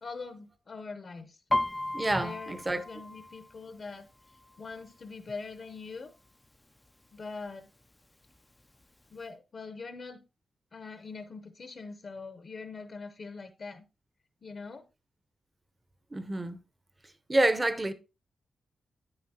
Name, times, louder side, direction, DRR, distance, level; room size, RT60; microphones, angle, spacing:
voice 1, 0.0-1.4 2.1-4.1 4.6-6.1 7.1-7.7 9.1-10.2 10.7-13.8 14.4-14.8, left 4 dB, 40° left, 0.8 m, -43 dB
Piano, 1.5-5.2 5.5-5.9 6.3-6.9 7.5-7.6 7.8-8.8 9.2-9.3, left 1 dB, 10° left, 0.4 m, -35 dB
voice 2, 1.9-2.8 16.1-16.6 17.3-17.9, right 1 dB, 15° right, 0.8 m, -28 dB
10.0 x 9.7 x 2.8 m
wide cardioid pair, 155°, 0 cm